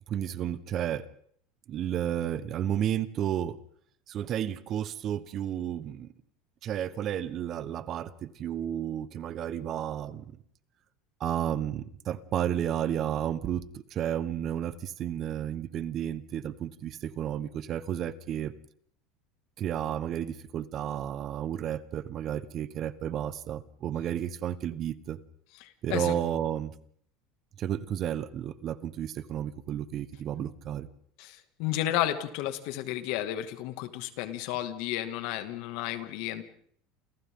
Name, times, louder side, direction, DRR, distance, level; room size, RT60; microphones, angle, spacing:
voice 1, 0.1-1.1 1.7-3.6 4.1-6.1 6.6-10.4 11.2-18.5 19.6-25.2 25.8-26.7 27.6-30.9, right 10 dB, 45° right, 14 dB, 1.3 m, -32 dB
voice 2, 25.6-26.1 31.2-36.4, left 13 dB, 70° left, 9 dB, 2.3 m, -32 dB
29.5 x 28.5 x 3.9 m, 0.63 s
supercardioid pair, 120°, 0 cm